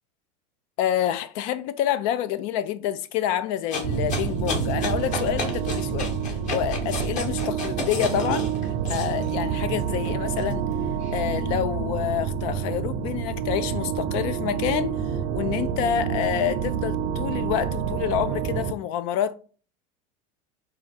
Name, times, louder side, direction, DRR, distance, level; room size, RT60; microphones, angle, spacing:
voice 1, 0.8-6.1 6.5-8.5 8.9-10.6 11.1-15.0 15.3-19.3, left 10 dB, 65° left, 0.5 m, -27 dB
sound 1, 3.7-9.3 9.8-11.2, left 3 dB, 45° left, 1.2 m, -33 dB
sound 2, 3.8-18.7, right 8 dB, 65° right, 0.6 m, -28 dB
4.1 x 2.5 x 4.0 m
supercardioid pair, 115°, 18 cm